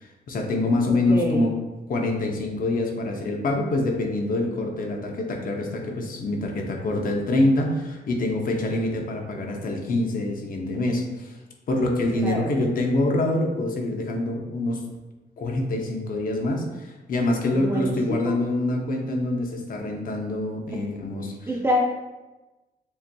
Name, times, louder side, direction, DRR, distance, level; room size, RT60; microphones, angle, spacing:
voice 1, 0.0-1.5 1.9-11.3 11.7-14.8 15.4-21.5, left 2 dB, 50° left, 1 dB, 0.7 m, -25 dB
voice 2, 0.9-1.4 12.1-12.5 17.5-18.4 21.5-21.8, equal, 10° right, -3 dB, 0.4 m, -27 dB
6.9 x 2.7 x 2.2 m, 1.1 s
wide cardioid pair, 160°, 18 cm